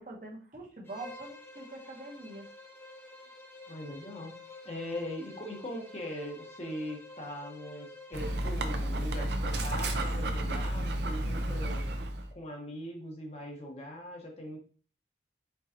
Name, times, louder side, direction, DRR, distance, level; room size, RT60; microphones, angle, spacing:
voice 1, 0.0-2.5, right 2 dB, 45° right, -1 dB, 1.1 m, -44 dB
Bowed string instrument, 0.8-8.5, left 2 dB, 15° left, 0.7 m, -50 dB
voice 2, 3.7-4.4 4.6-11.9 12.3-14.6, left 1 dB, 35° left, 1 dB, 1.0 m, -41 dB
Dog, 8.1-12.3, right 1 dB, 75° right, 0.6 m, -31 dB
4.5 x 3.9 x 2.8 m, 0.38 s
head